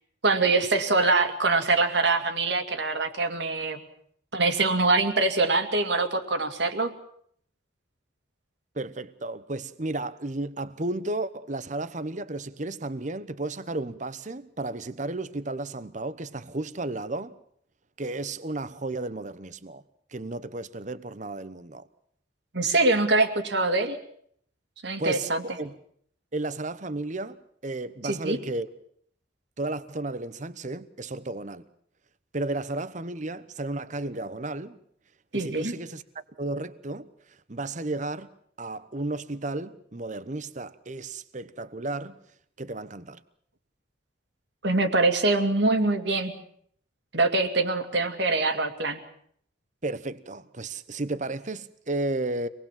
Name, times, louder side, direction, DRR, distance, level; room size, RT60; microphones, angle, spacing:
voice 1, 0.2-3.8 4.3-6.9 22.5-24.0 24.8-25.4 28.0-28.4 35.3-35.7 44.6-46.3 47.1-49.0, right 3 dB, 65° right, 2.4 m, -24 dB
voice 2, 8.7-17.3 18.0-19.8 20.1-21.9 25.0-25.8 26.3-27.4 27.6-28.7 29.6-31.6 32.3-34.8 35.3-36.0 36.4-37.1 37.5-38.3 38.6-42.2 42.6-43.2 49.8-52.5, right 2 dB, 40° right, 1.0 m, -33 dB
26.0 x 20.0 x 7.5 m
head